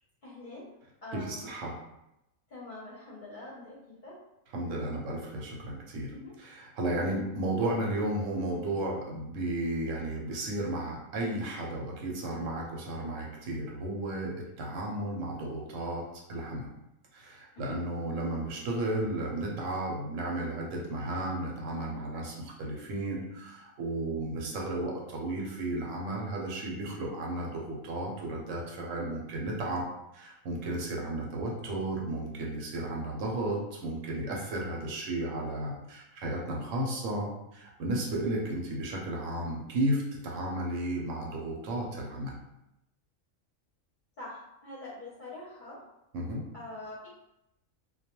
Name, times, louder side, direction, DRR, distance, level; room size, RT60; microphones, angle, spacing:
voice 1, 0.2-0.7 1.0-1.6 2.5-4.1 6.1-6.3 7.0-7.1 17.5-17.8 44.2-45.8 46.5-47.1, left 2 dB, 50° left, -7 dB, 0.6 m, -44 dB
voice 2, 1.1-1.8 4.5-16.0 16.3-16.7 17.1-29.8 30.1-42.4 46.1-46.4, right 1 dB, 75° right, -2 dB, 0.9 m, -33 dB
2.2 x 2.1 x 2.8 m, 0.87 s
omnidirectional pair, 1.4 m